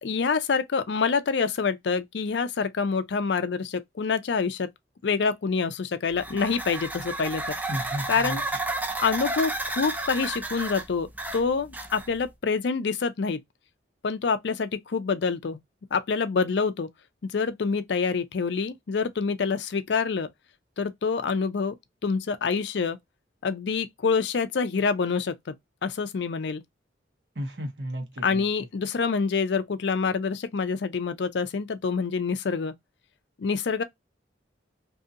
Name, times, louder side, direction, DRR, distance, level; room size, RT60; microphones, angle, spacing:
voice 1, 0.0-4.7 5.0-7.5 8.1-8.4 9.0-11.1 11.3-13.4 14.0-15.6 15.9-16.9 17.2-20.3 20.8-21.8 22.0-23.0 23.4-25.4 25.8-26.6 28.2-32.7 33.4-33.8, left 5 dB, 70° left, 0.4 m, -26 dB
sound 1, 6.1-12.3, right 2 dB, 10° right, 0.4 m, -32 dB
voice 2, 7.7-8.4 27.3-28.4, equal, 75° right, 1.1 m, -33 dB
2.7 x 2.6 x 2.4 m
head